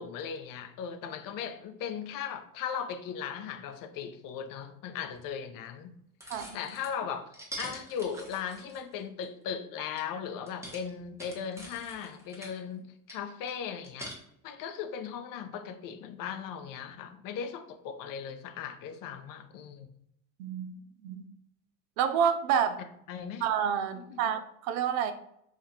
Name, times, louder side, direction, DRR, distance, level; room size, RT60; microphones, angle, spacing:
voice 1, 0.0-5.9 6.5-14.2 14.4-19.9 23.1-23.4 24.2-24.3, left 7 dB, 55° left, 0.5 m, -38 dB
sound 1, 5.1-5.2 6.2-6.9 7.3-9.2 10.0-10.1 10.5-12.6 13.1-14.1, equal, 5° right, 1.0 m, -44 dB
voice 2, 6.3-6.6 20.4-20.7 21.0-21.2 22.0-22.8 23.4-25.1, right 8 dB, 70° right, 0.5 m, -28 dB
2.6 x 2.5 x 4.1 m
hypercardioid pair, 75°, 42 cm